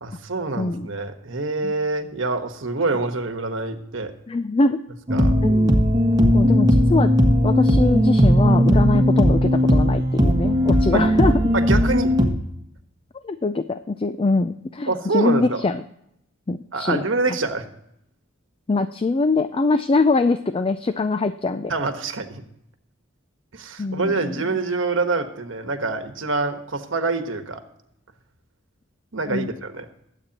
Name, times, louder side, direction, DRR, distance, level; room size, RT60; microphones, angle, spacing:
voice 1, 0.0-4.1 5.1-5.3 10.9-11.1 11.5-12.1 14.9-15.6 16.7-17.6 21.7-22.4 23.5-27.6 29.1-29.8, right 3 dB, 70° right, 7 dB, 1.3 m, -26 dB
voice 2, 0.6-0.9 1.6-1.7 4.3-4.8 5.4-5.8 6.3-7.1 7.4-11.3 13.2-15.8 16.5-17.0 18.7-21.7 23.8-24.4 29.3-29.5, left 3 dB, 25° left, 11 dB, 0.4 m, -23 dB
sound 1, 5.1-12.3, equal, 20° right, 1.5 m, -17 dB
21.5 x 8.3 x 2.9 m, 0.78 s
head